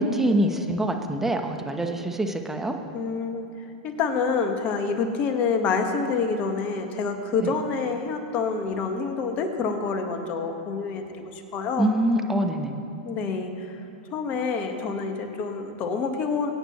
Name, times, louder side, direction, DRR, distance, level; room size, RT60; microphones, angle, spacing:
voice 1, 0.0-2.8 7.4-7.5 11.8-12.7, right 1 dB, 10° right, 4 dB, 1.1 m, -25 dB
voice 2, 2.9-3.4 3.8-11.9 13.0-13.8 14.1-16.5, left 5 dB, 40° left, 5 dB, 1.5 m, -27 dB
23.0 x 9.1 x 3.2 m, 2.6 s
hypercardioid pair, 105°, 4 cm